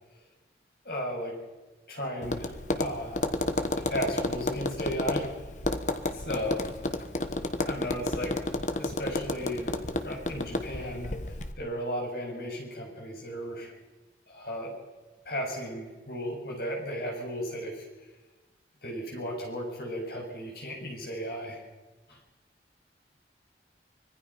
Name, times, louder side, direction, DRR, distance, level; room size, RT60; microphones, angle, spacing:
voice 1, 0.8-1.4 1.9-3.3 3.9-5.3 6.1-6.6 7.7-8.4 8.8-9.7 10.0-11.2 11.6-13.7 14.3-14.7 15.3-17.8 18.8-21.6 22.1-22.2, equal, 60° left, -1 dB, 7.3 m, -35 dB
Tap, 2.2-11.5, left 1 dB, 45° left, 1.3 m, -31 dB
25.0 x 19.0 x 5.8 m, 1.2 s
head